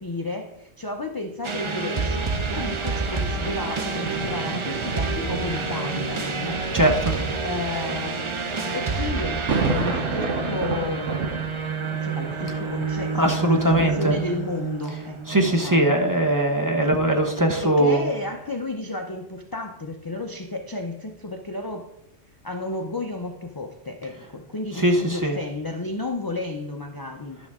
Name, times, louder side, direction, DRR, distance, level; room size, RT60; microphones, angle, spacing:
voice 1, 0.0-6.7 7.4-8.4 8.7-11.6 11.8-13.2 13.7-16.0 17.6-21.9 22.4-27.4, left 2 dB, 30° left, 3 dB, 0.4 m, -32 dB
sound 1, 1.4-16.2, right 4 dB, 35° right, 0.5 m, -29 dB
sound 2, 1.9-14.7 15.4-15.5, right 4 dB, 85° right, 1.3 m, -32 dB
voice 2, 6.7-7.2 12.5-12.7 13.1-14.2 15.3-18.1 24.7-25.4, right 1 dB, 15° right, 2 dB, 0.9 m, -21 dB
11.0 x 6.2 x 3.6 m, 0.83 s
omnidirectional pair, 1.3 m